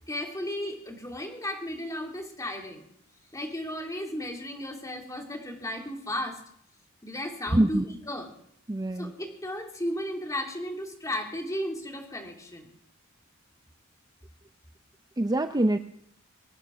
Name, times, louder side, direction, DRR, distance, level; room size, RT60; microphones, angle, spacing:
voice 1, 0.1-2.8 3.3-6.4 7.0-8.3 9.0-12.7, left 1 dB, 15° left, 1 dB, 3.0 m, -34 dB
voice 2, 7.5-7.8 8.7-9.1 15.2-15.8, right 1 dB, 20° right, 9 dB, 0.5 m, -24 dB
23.5 x 9.4 x 6.3 m, 0.70 s
head